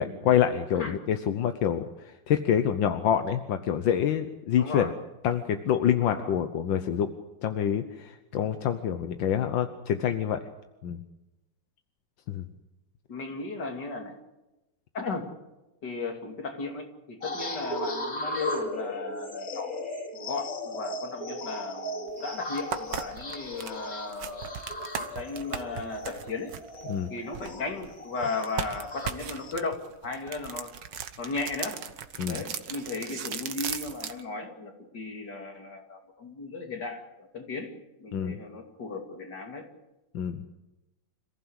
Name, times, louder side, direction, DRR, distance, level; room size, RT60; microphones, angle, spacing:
voice 1, 0.0-4.9 5.2-7.1 7.4-10.4 10.8-11.0 12.3-12.5 26.9-27.1 32.2-32.4 38.1-38.4 40.1-40.4, left 9 dB, 85° left, 8 dB, 1.7 m, -26 dB
voice 2, 4.6-4.9 6.0-6.3 13.1-14.1 14.9-15.2 15.8-19.8 20.1-24.5 25.0-26.5 27.1-30.7 31.2-31.8 32.2-37.7 38.0-39.7, left 3 dB, 65° left, 3 dB, 3.3 m, -36 dB
sound 1, 17.2-29.5, left 1 dB, 45° left, 3.2 m, -37 dB
sound 2, 22.1-22.2 22.6-27.9 28.4-34.2, right 8 dB, 70° right, 1.8 m, -37 dB
27.0 x 15.0 x 8.1 m, 1.0 s
omnidirectional pair, 2.0 m